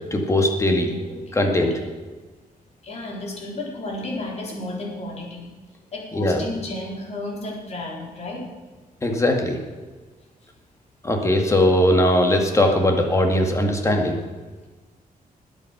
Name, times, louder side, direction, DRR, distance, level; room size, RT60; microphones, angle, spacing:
voice 1, 0.1-1.7 6.2-6.4 9.0-9.6 11.0-14.2, left 1 dB, 20° left, 3 dB, 2.1 m, -20 dB
voice 2, 2.8-5.5 5.9-8.5 11.5-11.6, left 2 dB, 45° left, -1 dB, 3.9 m, -32 dB
20.0 x 8.6 x 6.1 m, 1.3 s
wide cardioid pair, 155°, 15 cm